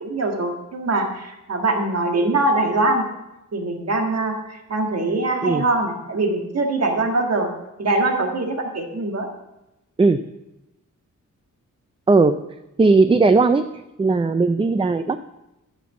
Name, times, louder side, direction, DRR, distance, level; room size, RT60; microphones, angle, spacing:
voice 1, 0.0-3.1 3.5-7.5 7.8-9.3, right 2 dB, 50° right, 3 dB, 1.8 m, -22 dB
voice 2, 12.8-13.6 14.0-15.2, right 3 dB, 15° right, 10 dB, 0.4 m, -17 dB
13.0 x 6.1 x 7.4 m, 0.94 s
wide cardioid pair, 155°, 31 cm